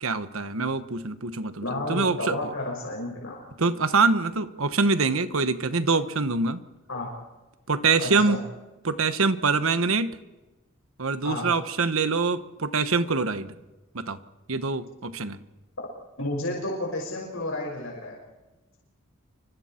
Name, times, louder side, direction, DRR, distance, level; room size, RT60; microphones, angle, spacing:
voice 1, 0.0-2.4 3.6-6.6 7.7-8.4 8.8-10.1 11.0-13.5 13.9-14.2 14.5-15.4, right 4 dB, 80° right, 11 dB, 1.2 m, -24 dB
voice 2, 1.6-3.4 6.9-7.1 8.0-8.4 11.2-11.5 14.5-14.6 16.2-18.2, left 2 dB, 75° left, -2 dB, 5.8 m, -31 dB
29.0 x 24.5 x 4.5 m, 1.1 s
head